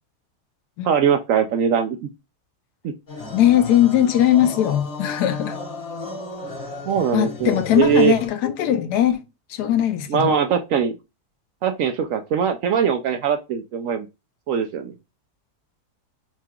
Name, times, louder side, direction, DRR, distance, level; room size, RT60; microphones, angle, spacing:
voice 1, 0.8-2.1 2.8-2.9 6.9-8.1 10.1-10.9 11.6-14.1 14.5-14.9, right 7 dB, 70° right, 0.9 m, -21 dB
sound 1, 3.1-8.3, left 3 dB, 60° left, 2.2 m, -34 dB
voice 2, 3.3-5.6 7.1-9.2 9.5-10.3, left 11 dB, 90° left, 1.2 m, -19 dB
5.8 x 2.9 x 2.3 m
omnidirectional pair, 1.7 m